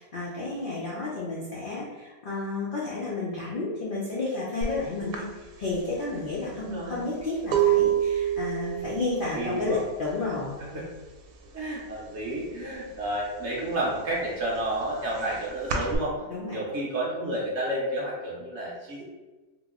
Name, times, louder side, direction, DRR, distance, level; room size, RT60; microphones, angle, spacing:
voice 1, 0.0-5.2 5.6-10.9 16.3-16.6, left 3 dB, 80° left, -6 dB, 0.4 m, -31 dB
sound 1, 4.6-4.8 5.1-10.8 11.1-11.6 11.9-13.0 13.4-16.0, right 9 dB, 85° right, 1.2 m, -28 dB
voice 2, 6.5-7.0 9.3-9.8 10.7-10.8 11.5-16.2 16.5-19.0, right 1 dB, 60° right, -5 dB, 0.8 m, -31 dB
2.9 x 2.0 x 3.5 m, 1.2 s
omnidirectional pair, 1.7 m